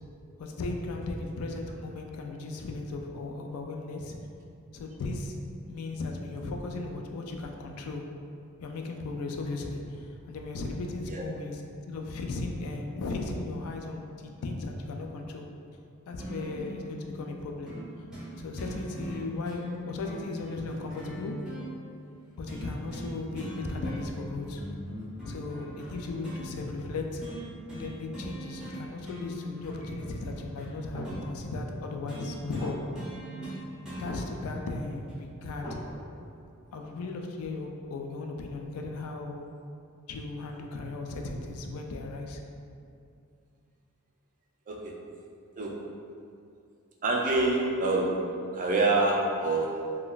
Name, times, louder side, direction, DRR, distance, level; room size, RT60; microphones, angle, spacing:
voice 1, 0.4-4.2 4.7-5.4 5.7-8.0 8.6-15.5 16.1-17.7 18.4-21.4 22.4-24.6 25.2-27.3 27.7-32.8 33.9-35.8 36.7-39.5 40.1-42.4, left 3 dB, 75° left, 2 dB, 0.3 m, -36 dB
sound 1, 16.2-16.8 17.7-17.8 18.1-18.3 18.6-21.7 22.5-23.1 23.4-24.2 24.6-26.4 27.2-27.4 27.7-27.9 28.1-28.8 29.0-31.2 32.1-34.1 35.1-35.2, right 1 dB, 5° right, 0.9 m, -40 dB
sound 2, 30.9-31.2 31.9-32.0 32.3-32.4 32.6-33.3 33.8-34.4 34.8-34.9 35.1-36.2, equal, 25° left, 1.5 m, -41 dB
voice 2, 44.7-45.0 45.6-45.9 47.0-50.0, right 2 dB, 35° right, -1 dB, 0.4 m, -27 dB
3.8 x 2.2 x 2.3 m, 2.5 s
head